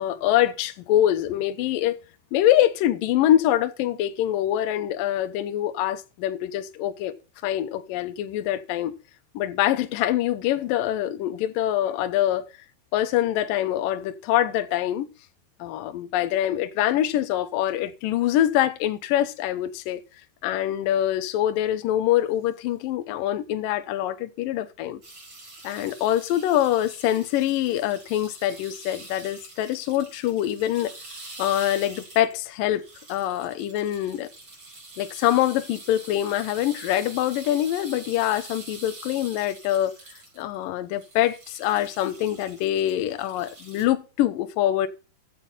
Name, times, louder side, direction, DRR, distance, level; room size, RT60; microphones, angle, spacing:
voice 1, 0.0-2.0 2.3-7.2 7.4-9.0 9.3-12.5 12.9-15.1 15.6-20.0 20.4-25.0 25.6-30.9 31.4-32.8 33.1-34.3 35.0-39.9 40.4-44.9, left 12 dB, 85° left, 2.0 m, -24 dB
sound 1, 25.0-32.5 32.7-40.6 40.9-43.9, right 2 dB, 25° right, 5.1 m, -45 dB
15.0 x 7.7 x 4.1 m
omnidirectional pair, 5.3 m